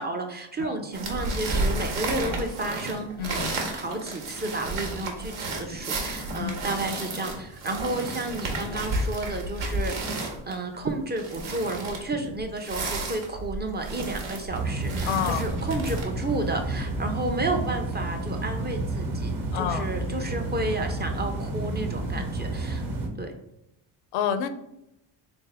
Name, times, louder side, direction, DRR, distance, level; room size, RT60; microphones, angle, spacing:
voice 1, 0.0-3.4 3.7-10.2 10.5-22.9 23.2-23.3, right 2 dB, 20° right, 4 dB, 0.4 m, -32 dB
sound 1, 0.9-16.0, right 2 dB, 75° right, 1.1 m, -32 dB
voice 2, 3.2-3.6 6.4-6.7 15.1-15.5 19.5-19.9 24.1-24.5, left 8 dB, 80° left, 11 dB, 0.6 m, -29 dB
sound 2, 14.5-23.1, right 2 dB, 40° right, 1.0 m, -30 dB
3.5 x 2.8 x 3.3 m, 0.84 s
supercardioid pair, 80°, 50 cm